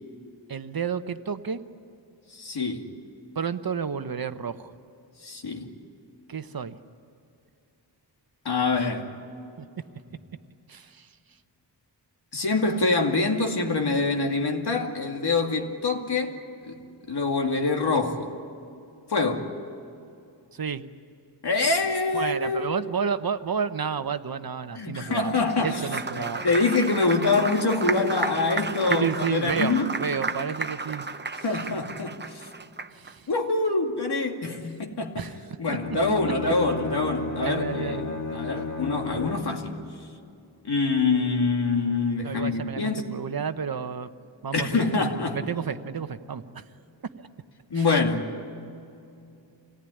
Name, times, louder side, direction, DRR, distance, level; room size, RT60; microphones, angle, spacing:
voice 1, 0.5-1.6 3.3-4.7 6.3-6.8 9.6-9.7 10.7-11.1 20.5-20.8 22.1-25.3 25.6-26.5 28.8-31.1 31.5-31.6 32.9-33.3 35.2-35.4 35.7-35.8 37.4-38.0 39.2-39.3 42.2-44.1 44.4-45.0 45.3-46.6 47.7-47.8, right 6 dB, 50° right, 10 dB, 1.0 m, -31 dB
voice 2, 2.3-2.8 5.2-5.7 8.4-9.1 12.3-16.4 16.7-16.8 17.1-18.3 19.1-19.5 21.4-22.7 24.8-25.9 26.4-29.9 31.4-32.5 33.3-35.3 35.6-39.8 40.6-43.1 44.5-45.4 47.7-48.3, left 3 dB, 60° left, 2 dB, 2.5 m, -25 dB
Applause, 25.3-33.1, right 4 dB, 25° right, 0.7 m, -33 dB
Bowed string instrument, 35.7-39.6, left 3 dB, 40° left, 3.1 m, -32 dB
27.0 x 18.5 x 10.0 m, 2.6 s
wide cardioid pair, 135°, 44 cm